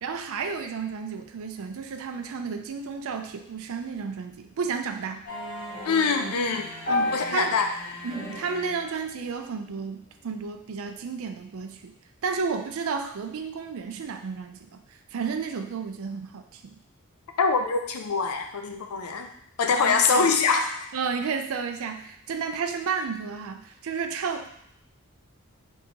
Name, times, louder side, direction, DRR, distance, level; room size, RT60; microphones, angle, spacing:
voice 1, 0.0-5.2 6.2-6.3 6.9-7.6 8.0-11.9 12.2-14.8 15.1-16.8 19.8-20.3 20.9-24.5, right 5 dB, 65° right, 6 dB, 0.4 m, -32 dB
sound 1, 5.3-9.2, left 2 dB, 40° left, 1.0 m, -33 dB
voice 2, 5.8-6.7 7.1-7.7 17.4-19.3 19.6-20.9, left 4 dB, 80° left, 5 dB, 0.5 m, -24 dB
4.2 x 3.4 x 2.9 m, 0.71 s
head